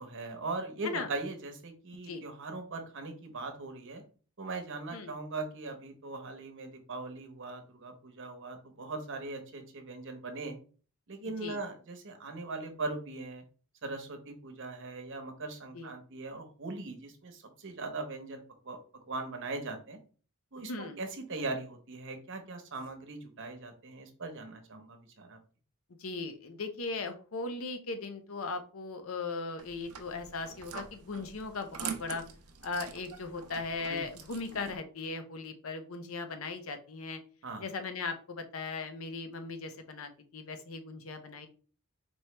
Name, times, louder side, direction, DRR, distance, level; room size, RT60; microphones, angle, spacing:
voice 1, 0.0-4.0 4.4-10.6 11.1-13.4 13.8-18.8 19.1-20.0 20.5-25.4 33.9-34.0 37.4-37.6, right 3 dB, 60° right, 5 dB, 0.9 m, -40 dB
voice 2, 20.7-21.0 26.0-32.2 32.6-37.2 37.6-41.5, left 3 dB, 65° left, 8 dB, 0.6 m, -38 dB
sound 1, 29.6-34.8, right 7 dB, 80° right, 0.6 m, -44 dB
4.4 x 3.0 x 3.3 m, 0.39 s
head